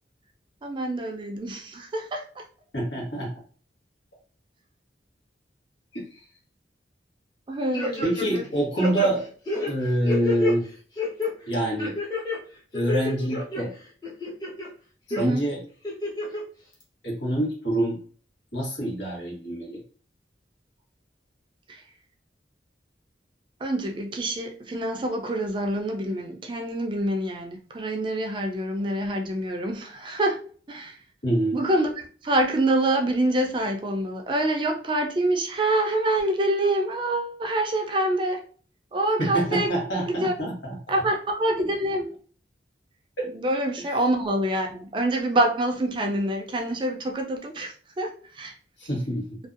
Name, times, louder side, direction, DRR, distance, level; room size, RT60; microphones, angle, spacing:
voice 1, 0.6-2.4 7.5-8.1 15.1-15.5 21.7-21.8 23.6-31.0 31.5-38.5 38.9-39.8 40.1-40.3 40.9-42.2 43.3-48.5, right 1 dB, 25° right, 3 dB, 0.3 m, -26 dB
voice 2, 2.7-3.3 5.9-6.1 8.0-9.2 9.7-10.7 11.5-11.9 12.7-13.7 15.2-15.6 17.0-18.0 18.5-19.8 31.2-31.6 39.2-40.8 43.2-43.3 48.8-49.3, right 1 dB, 85° left, -2 dB, 1.1 m, -26 dB
sound 1, 7.7-8.5 8.8-10.5 11.0-11.3 11.8-12.4 12.7-13.6 14.0-14.7 15.1-15.2 15.8-16.4 16.8-16.9, left 3 dB, 25° left, 0.6 m, -29 dB
2.6 x 2.2 x 2.4 m, 0.42 s
head